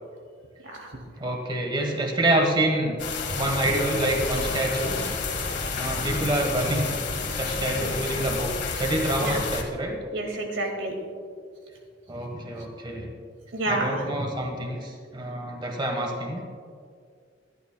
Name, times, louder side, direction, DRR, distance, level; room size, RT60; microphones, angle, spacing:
voice 1, 1.2-3.0 3.3-5.1 5.7-6.9 7.4-8.5 8.8-10.0 12.1-13.1 13.7-16.4, right 1 dB, 25° right, 2 dB, 1.3 m, -27 dB
sound 1, 3.0-9.6, left 4 dB, 65° left, 1.7 m, -30 dB
voice 2, 10.1-10.9 13.5-14.0, right 2 dB, 75° right, 2 dB, 2.3 m, -29 dB
25.5 x 11.5 x 2.2 m, 2.2 s
head